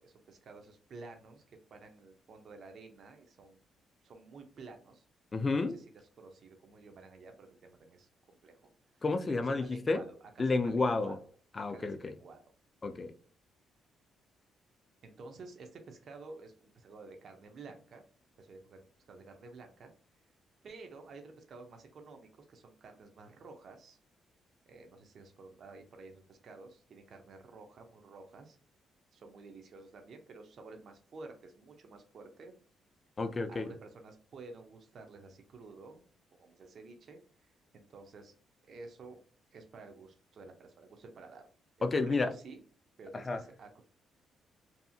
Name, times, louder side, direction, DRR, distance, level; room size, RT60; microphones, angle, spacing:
voice 1, 0.0-1.4 1.7-3.6 4.0-5.0 5.7-5.8 6.2-8.7 9.3-11.2 11.5-12.4 15.0-18.1 18.4-19.9 20.6-24.0 24.7-28.6 29.1-32.6 33.5-36.0 36.4-38.3 38.6-39.2 39.5-41.5 41.8-42.6 43.0-43.8, right 3 dB, 55° right, 4 dB, 0.5 m, -51 dB
voice 2, 5.3-5.8 9.0-10.0 10.4-11.2 11.6-12.1 12.8-13.1 33.2-33.7 41.8-42.3 43.1-43.4, left 3 dB, 30° left, 8 dB, 0.3 m, -31 dB
2.7 x 2.5 x 2.4 m, 0.42 s
cardioid pair, 90°, 0 cm